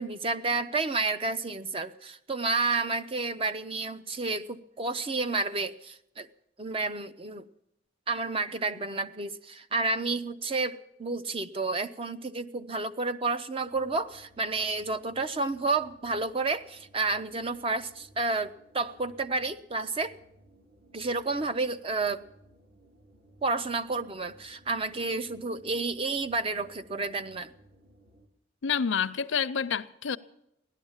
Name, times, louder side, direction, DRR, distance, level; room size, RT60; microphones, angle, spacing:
voice 1, 0.0-6.3 6.6-7.5 8.1-20.2 20.9-22.2 23.4-27.5, right 3 dB, 30° right, 0.6 m, -30 dB
sound 1, 13.6-28.3, right 1 dB, 55° right, 2.0 m, -60 dB
voice 2, 28.6-30.2, left 6 dB, 80° left, 0.6 m, -28 dB
16.5 x 11.5 x 7.2 m
head